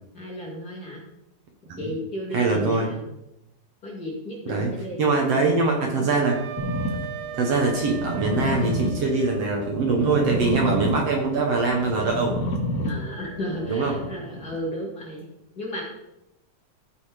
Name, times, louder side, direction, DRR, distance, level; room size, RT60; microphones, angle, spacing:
voice 1, 0.1-1.0 1.6-3.2 3.8-6.1 12.8-15.2 15.6-15.8, equal, 35° left, -3 dB, 2.2 m, -34 dB
voice 2, 2.3-2.9 4.5-4.7 5.0-6.4 7.0-7.1 7.3-12.4 13.7-13.9, right 3 dB, 55° right, 0 dB, 2.2 m, -23 dB
Wind instrument woodwind instrument, 6.2-9.4, right 11 dB, 85° right, 2.2 m, -37 dB
sound 1, 6.6-14.5, equal, 55° left, 3.2 m, -31 dB
15.5 x 5.4 x 5.1 m, 0.88 s
omnidirectional pair, 3.8 m